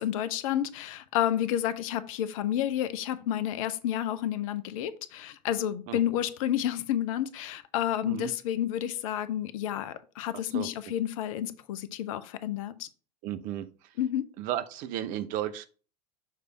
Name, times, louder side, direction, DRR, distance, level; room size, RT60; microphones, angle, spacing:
voice 1, 0.0-12.9 14.0-14.3, left 11 dB, 50° left, 0.6 m, -30 dB
voice 2, 13.2-13.7 14.4-15.7, right 11 dB, 40° right, 0.6 m, -33 dB
6.7 x 3.3 x 4.8 m
figure-of-eight pair, 85°, 21 cm